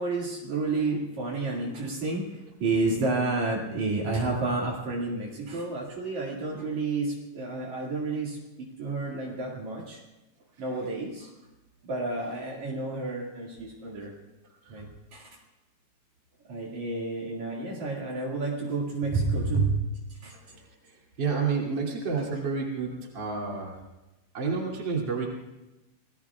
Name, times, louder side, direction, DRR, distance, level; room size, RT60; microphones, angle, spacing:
voice 1, 0.0-10.0 10.6-11.3 11.8-14.1 14.7-15.3 16.5-19.8 20.2-20.3, right 3 dB, 60° right, -3 dB, 3.5 m, -30 dB
voice 2, 21.2-23.8 24.3-25.3, right 5 dB, 35° right, -2 dB, 3.2 m, -29 dB
27.5 x 19.0 x 2.4 m, 1.0 s
omnidirectional pair, 3.9 m